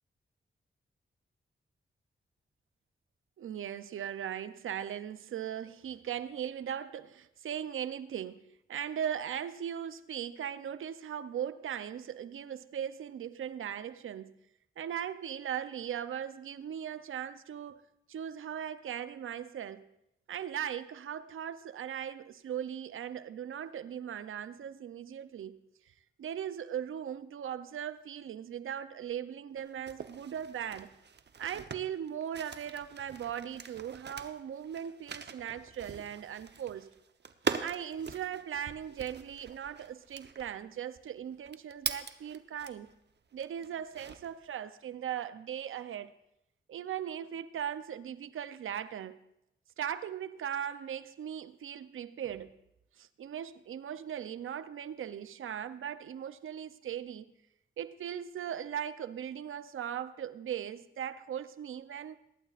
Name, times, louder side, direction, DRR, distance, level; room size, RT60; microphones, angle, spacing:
voice 1, 3.4-8.4 8.7-14.3 14.8-17.8 18.1-19.9 20.3-25.6 26.2-30.9 31.4-36.9 37.6-42.9 43.3-46.1 46.7-49.2 49.8-52.5 53.0-57.3 57.8-62.2, right 9 dB, 80° right, 0.6 m, -39 dB
sound 1, 29.6-43.0 43.4-44.4, right 6 dB, 55° right, 0.9 m, -42 dB
22.5 x 11.5 x 2.5 m
cardioid pair, 50°, 21 cm